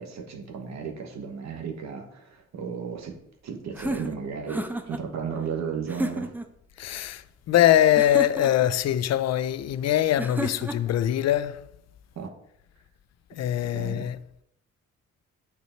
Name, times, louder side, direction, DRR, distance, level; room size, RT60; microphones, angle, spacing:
voice 1, 0.0-3.1 3.4-6.3 12.1-12.3 13.7-14.1, right 6 dB, 60° right, 1.4 m, -34 dB
sound 1, 3.7-5.0 5.9-6.5 8.0-8.7 10.2-11.0, right 1 dB, 5° right, 0.7 m, -32 dB
voice 2, 6.8-11.7 13.3-14.4, left 12 dB, 60° left, 0.5 m, -23 dB
8.4 x 4.8 x 4.5 m
cardioid pair, 90°, 30 cm